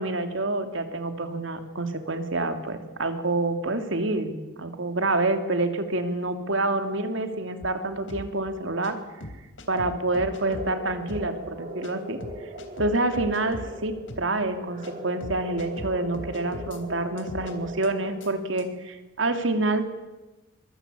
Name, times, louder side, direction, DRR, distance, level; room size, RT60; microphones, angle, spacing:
voice 1, 0.0-9.0 9.7-12.2 12.8-19.8, right 2 dB, 80° right, 7 dB, 2.8 m, -27 dB
sound 1, 7.6-7.7 8.1-8.3 8.8-8.9 9.2-10.7 11.1-11.3 11.8-11.9 12.2-13.7 14.1-14.3 14.8-14.9 15.2-16.8 17.2-17.5 17.8-17.9 18.2-18.3 18.6-18.7, left 1 dB, 75° left, 3.4 m, -39 dB
sound 2, 10.1-18.5, right 1 dB, 40° right, 4.1 m, -40 dB
24.5 x 22.0 x 8.5 m, 1.1 s
head